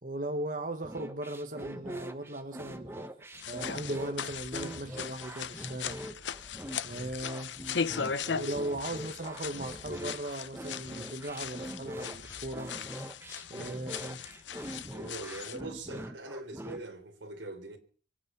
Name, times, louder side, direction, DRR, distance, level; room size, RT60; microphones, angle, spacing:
voice 1, 0.0-3.1 3.5-6.0 6.8-7.5 8.4-12.7 13.5-14.2 15.9-16.0, right 1 dB, 45° right, 1.3 m, -38 dB
sound 1, 0.8-16.8, right 1 dB, 15° right, 1.1 m, -43 dB
sound 2, 3.3-15.6, left 7 dB, 80° left, 0.8 m, -39 dB
sound 3, 4.3-8.2 8.8-13.0 13.3-13.5 14.1-15.0, equal, 10° left, 2.8 m, -59 dB
voice 2, 8.2-8.6 13.6-14.2 14.9-17.8, right 2 dB, 90° right, 3.6 m, -42 dB
25.0 x 8.7 x 5.7 m
head